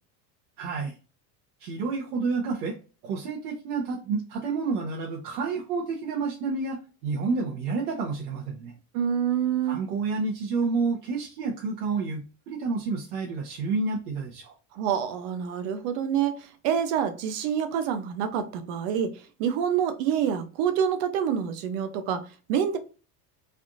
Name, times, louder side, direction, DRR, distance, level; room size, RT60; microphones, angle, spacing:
voice 1, 0.6-0.9 1.6-2.7 3.0-8.7 9.6-14.5, right 4 dB, 80° right, 0.9 m, -29 dB
voice 2, 8.9-9.8 14.7-22.8, right 8 dB, 50° right, 0.5 m, -27 dB
3.4 x 2.4 x 2.6 m
cardioid pair, 170°, 46 cm